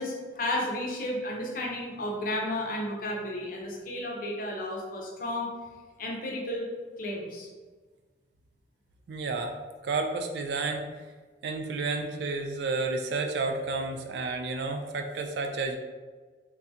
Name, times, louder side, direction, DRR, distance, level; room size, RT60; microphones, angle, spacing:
voice 1, 0.0-5.5 6.0-6.7 7.0-7.5, left 1 dB, 45° left, -1 dB, 0.6 m, -33 dB
voice 2, 9.1-9.6 9.8-10.9 11.4-15.8, right 3 dB, 60° right, 4 dB, 0.3 m, -31 dB
3.5 x 2.3 x 2.7 m, 1.4 s
head